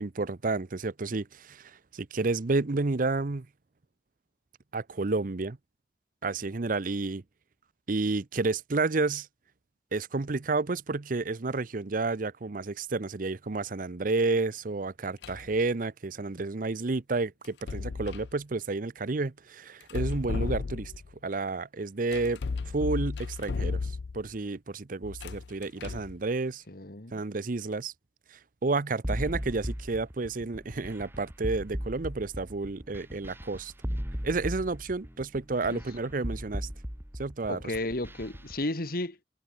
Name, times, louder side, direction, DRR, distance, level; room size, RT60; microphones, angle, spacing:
voice 1, 0.0-3.5 4.7-5.6 6.2-7.2 7.9-9.3 9.9-20.9 21.2-22.4 22.7-26.6 27.1-27.9 28.3-33.7 34.2-36.7 37.2-37.6, right 3 dB, 50° right, 0.7 m, -30 dB
sound 1, 15.2-15.5 17.4-18.3 19.8-21.1 22.1-24.3 25.0-26.2, left 4 dB, 75° left, 0.5 m, -34 dB
voice 2, 26.7-27.2 35.7-35.8 37.5-39.2, left 1 dB, 55° left, 2.5 m, -33 dB
sound 2, 29.0-38.6, equal, 15° right, 2.5 m, -37 dB
head